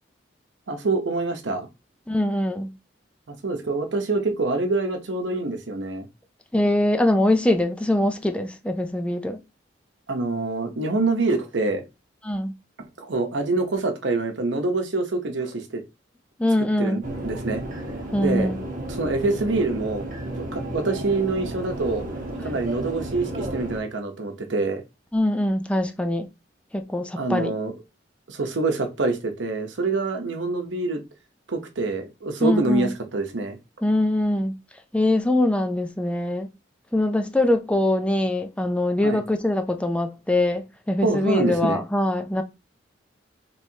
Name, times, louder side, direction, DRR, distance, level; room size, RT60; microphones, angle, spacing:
voice 1, 0.7-1.7 3.3-6.1 10.1-11.8 13.0-15.8 16.8-17.6 18.2-18.5 18.9-20.1 20.4-22.1 22.4-24.8 27.2-27.7 28.3-31.0 31.5-33.6 39.0-39.2 41.0-41.8, right 3 dB, 75° right, 0.8 m, -26 dB
voice 2, 2.1-2.7 6.5-9.4 12.2-12.5 16.4-17.0 18.1-18.6 22.4-22.5 25.1-26.3 26.7-27.5 32.4-32.9 33.8-34.6 34.9-36.5 36.9-42.4, left 1 dB, 5° left, 0.3 m, -23 dB
sound 1, 17.0-23.8, right 1 dB, 45° right, 1.0 m, -33 dB
4.5 x 3.1 x 2.7 m
head